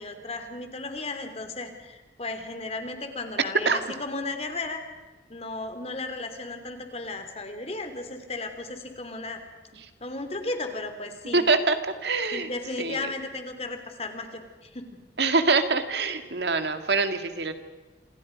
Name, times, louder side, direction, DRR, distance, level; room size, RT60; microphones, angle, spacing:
voice 1, 0.0-4.8 5.3-9.4 10.0-11.4 12.3-14.9, left 2 dB, 35° left, 7 dB, 3.0 m, -35 dB
voice 2, 11.3-12.5 12.8-13.1 15.2-17.5, right 3 dB, 70° right, 8 dB, 2.1 m, -24 dB
28.0 x 27.5 x 5.3 m, 1.2 s
head